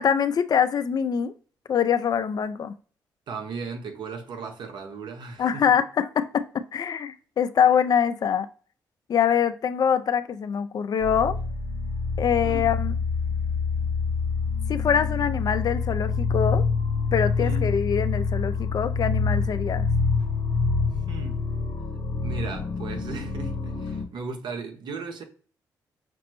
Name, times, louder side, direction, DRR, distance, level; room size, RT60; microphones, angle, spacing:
voice 1, 0.0-1.3 1.7-2.7 5.4-8.5 9.1-11.4 12.2-12.9 14.7-16.7 17.1-19.9, left 8 dB, 55° left, 0.4 m, -24 dB
voice 2, 3.3-5.8 12.4-12.7 17.4-17.6 21.1-21.4 22.2-25.2, right 4 dB, 70° right, 0.8 m, -36 dB
sound 1, 11.0-24.1, left 4 dB, 80° left, 0.7 m, -26 dB
5.9 x 2.0 x 3.0 m
supercardioid pair, 55°, 8 cm